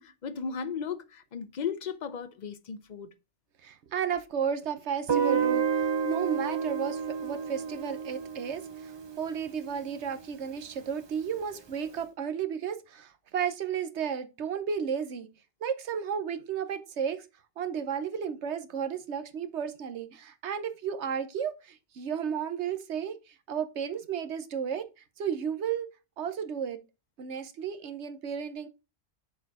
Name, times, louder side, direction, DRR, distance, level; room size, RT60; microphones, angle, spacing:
voice 1, 0.0-3.1, left 6 dB, 45° left, 0.7 m, -36 dB
voice 2, 3.6-15.3 15.6-17.3 17.6-25.9 26.2-26.8 27.2-28.7, right 7 dB, 80° right, 1.1 m, -33 dB
Guitar, 5.1-10.0, right 7 dB, 45° right, 0.3 m, -30 dB
6.8 x 4.4 x 4.8 m
omnidirectional pair, 1.2 m